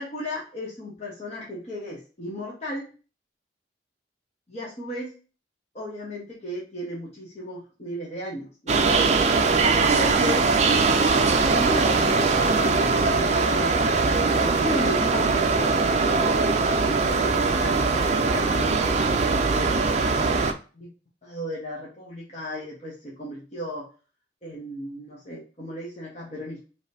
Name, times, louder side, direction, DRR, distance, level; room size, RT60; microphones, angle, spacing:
voice 1, 0.0-2.9 4.5-5.1 5.7-8.8 9.7-10.5 11.3-13.8 14.4-19.0 19.5-20.2 20.7-20.9 21.2-23.9 24.4-26.6, equal, 35° left, -5 dB, 1.2 m, -35 dB
sound 1, 8.7-20.5, right 4 dB, 35° right, 0.4 m, -21 dB
5.0 x 3.1 x 2.7 m, 0.35 s
head